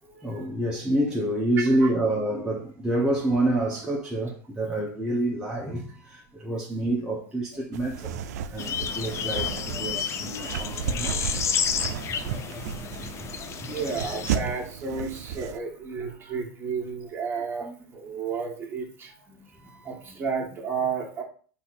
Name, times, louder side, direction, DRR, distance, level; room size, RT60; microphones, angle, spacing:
voice 1, 0.1-8.2 8.5-11.9 13.6-13.7 17.6-17.7 19.3-20.2, right 1 dB, 10° right, 0.8 m, -28 dB
voice 2, 1.6-1.9 8.5-8.7 11.0-11.1 11.8-12.4 13.6-19.1 19.8-21.2, right 5 dB, 25° right, 1.5 m, -32 dB
sound 1, 7.7-15.6, right 8 dB, 90° right, 0.4 m, -34 dB
sound 2, 8.6-14.4, left 7 dB, 35° left, 0.5 m, -31 dB
4.0 x 2.8 x 4.1 m
supercardioid pair, 120°, 9 cm